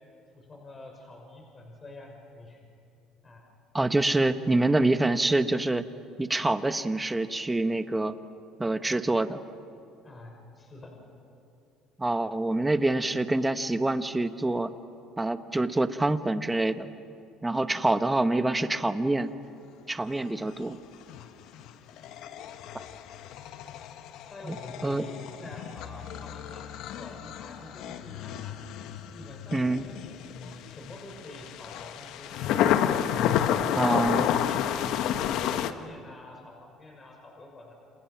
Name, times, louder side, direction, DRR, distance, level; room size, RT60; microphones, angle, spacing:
voice 1, 0.3-2.6 3.2-3.4 10.0-10.9 24.3-28.6 29.1-32.3 33.3-37.7, left 2 dB, 30° left, 1 dB, 6.0 m, -47 dB
voice 2, 3.7-5.8 6.2-8.2 8.6-9.4 12.0-14.7 15.2-16.9 17.4-19.3 19.9-20.8 24.4-24.5 24.8-25.0 29.5-29.9 33.8-34.3, right 2 dB, 15° right, 10 dB, 1.2 m, -26 dB
sound 1, 20.9-35.7, left 10 dB, 70° left, 1.1 m, -31 dB
29.5 x 28.0 x 5.9 m, 2.5 s
supercardioid pair, 90°, 0 cm